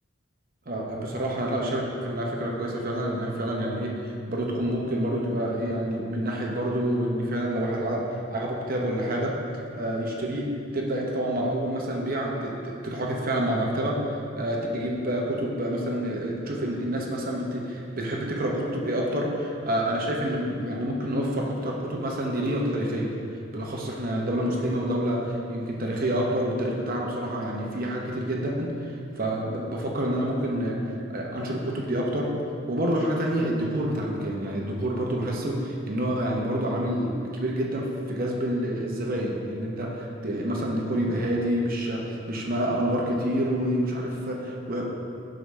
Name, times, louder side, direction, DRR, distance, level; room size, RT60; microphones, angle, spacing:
voice 1, 0.7-9.3 9.7-14.0 14.4-23.2 23.5-30.8 31.1-32.3 32.7-44.8, right 1 dB, 40° right, -2 dB, 0.8 m, -28 dB
8.8 x 6.1 x 3.2 m, 2.5 s
head